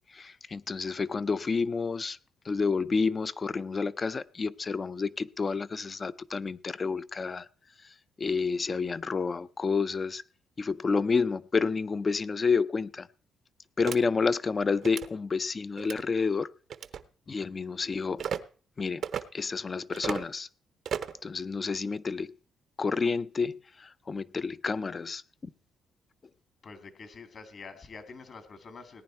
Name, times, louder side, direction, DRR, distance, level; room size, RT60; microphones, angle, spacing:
voice 1, 0.1-2.2 2.5-7.5 8.2-10.2 10.6-13.1 13.8-16.5 17.3-18.2 18.8-19.0 19.3-20.5 21.2-22.3 22.8-25.2, left 4 dB, 30° left, 0.5 m, -29 dB
sound 1, 13.9-14.0 14.8-15.1 15.8-16.0 16.7-17.0 18.2-18.4 19.0-19.2 19.9-20.3 20.9-21.2, right 8 dB, 60° right, 0.7 m, -34 dB
voice 2, 17.3-17.6 26.6-29.0, left 4 dB, 50° left, 2.1 m, -47 dB
18.5 x 9.7 x 4.4 m
cardioid pair, 105°, 0 cm